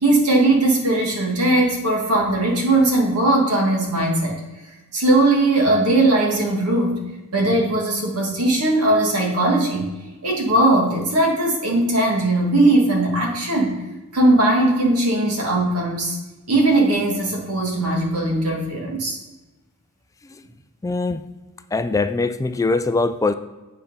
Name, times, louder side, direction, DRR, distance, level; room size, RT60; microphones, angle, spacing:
voice 1, 0.0-4.4 4.9-7.1 7.3-9.9 10.2-13.8 14.1-16.2 16.5-19.2, right 2 dB, 90° right, 0 dB, 1.9 m, -19 dB
voice 2, 20.8-21.2 21.7-23.3, left 3 dB, 15° left, 10 dB, 0.3 m, -21 dB
8.5 x 4.4 x 5.4 m, 1.1 s
head